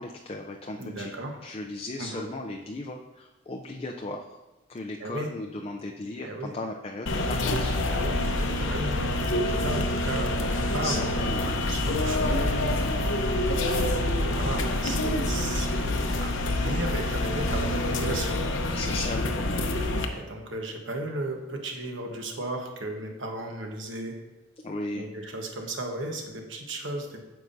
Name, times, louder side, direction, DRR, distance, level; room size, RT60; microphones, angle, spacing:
voice 1, 0.0-1.1 1.4-4.3 4.7-7.8 10.8-11.5 18.8-19.7 24.6-25.1, left 2 dB, 30° left, 2 dB, 0.4 m, -36 dB
voice 2, 0.8-1.4 2.0-2.3 5.0-5.3 6.2-6.5 7.9-11.4 11.7-13.2 13.6-14.0 14.3-18.4 20.1-24.2 24.9-27.2, right 1 dB, 70° right, 2 dB, 1.2 m, -35 dB
sound 1, 7.1-20.1, left 1 dB, 75° left, 0.8 m, -27 dB
9.2 x 7.0 x 2.7 m, 1.1 s
head